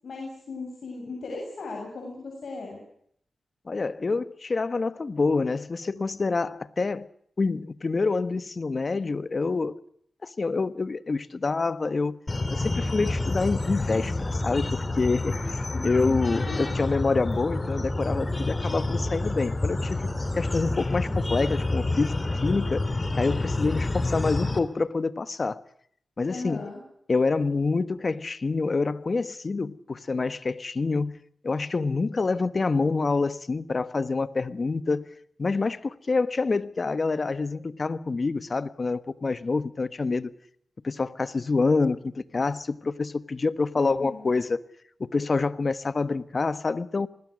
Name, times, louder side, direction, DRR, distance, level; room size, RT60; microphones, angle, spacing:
voice 1, 0.0-2.8 15.7-16.2 16.5-16.7 26.3-26.8 43.7-44.3, left 3 dB, 70° left, 7.8 m, -37 dB
voice 2, 3.7-7.1 7.4-9.8 10.2-12.2 12.5-15.6 15.8-22.1 22.4-22.8 23.1-25.6 26.2-26.6 27.1-31.2 31.4-35.0 35.4-40.3 40.8-44.6 45.0-47.1, left 3 dB, 45° left, 1.3 m, -27 dB
sound 1, 12.3-24.6, left 2 dB, 25° left, 3.0 m, -28 dB
25.5 x 20.5 x 6.4 m
cardioid pair, 80°, 0 cm